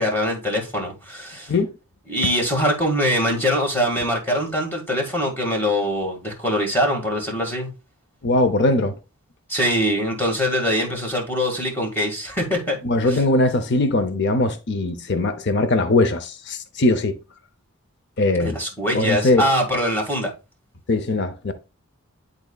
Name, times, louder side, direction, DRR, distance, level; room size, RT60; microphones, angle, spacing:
voice 1, 0.0-1.5 2.1-7.7 9.5-12.8 13.1-13.2 18.4-20.3, equal, 10° left, 1.7 m, -23 dB
voice 2, 8.2-8.9 12.8-17.2 18.2-18.6 18.9-19.5 20.9-21.5, left 2 dB, 55° left, 0.6 m, -20 dB
10.5 x 4.1 x 2.3 m
head